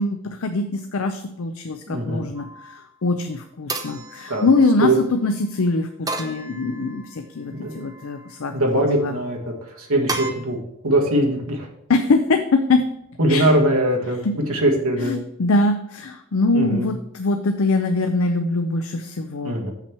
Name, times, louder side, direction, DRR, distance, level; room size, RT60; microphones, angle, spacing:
voice 1, 0.0-9.2 11.9-12.9 13.3-13.5 14.2-14.3 15.0-19.6, left 3 dB, 70° left, 7 dB, 0.5 m, -23 dB
voice 2, 1.9-2.2 4.3-4.5 4.8-4.9 7.5-7.9 8.5-10.6 10.8-11.7 13.2-14.2 14.5-15.2 16.5-16.9 19.4-19.7, right 1 dB, 80° right, 0 dB, 1.6 m, -21 dB
sound 1, 2.4-2.9 3.7-5.1 6.1-7.2 7.7-8.4 10.1-10.3, right 3 dB, 15° right, 0.7 m, -33 dB
7.0 x 5.7 x 4.5 m, 0.76 s
head